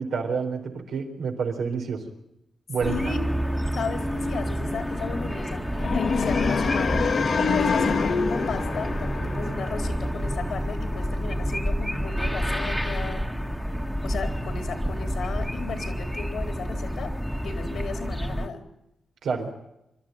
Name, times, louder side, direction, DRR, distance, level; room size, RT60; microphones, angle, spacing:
voice 1, 0.0-2.0 2.7-3.1 19.2-19.5, right 5 dB, 90° right, 2 dB, 4.1 m, -28 dB
voice 2, 2.8-3.3 3.7-13.3 14.0-17.1 17.4-18.6, left 5 dB, 80° left, 6 dB, 3.9 m, -34 dB
sound 1, 2.8-18.5, equal, ahead, 1.5 m, -29 dB
sound 2, 5.8-9.9, left 5 dB, 60° left, 1.8 m, -26 dB
25.5 x 13.0 x 9.2 m, 0.85 s
cardioid pair, 105°, 0 cm